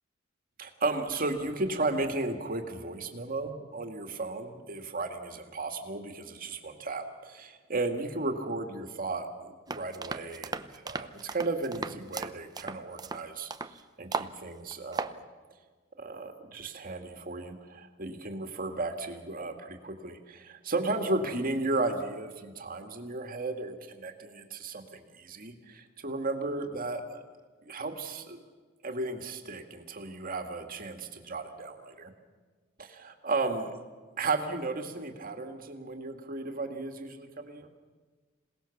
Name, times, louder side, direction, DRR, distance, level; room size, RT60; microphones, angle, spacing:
voice 1, 0.6-15.2 16.0-27.2 27.7-28.4 28.8-32.1 32.8-33.8 34.2-37.7, right 2 dB, 45° right, 5 dB, 2.3 m, -34 dB
sound 1, 9.7-13.8 14.1-14.3 14.7-15.2, right 3 dB, 20° right, 0.7 m, -36 dB
27.0 x 18.5 x 7.3 m, 1.4 s
head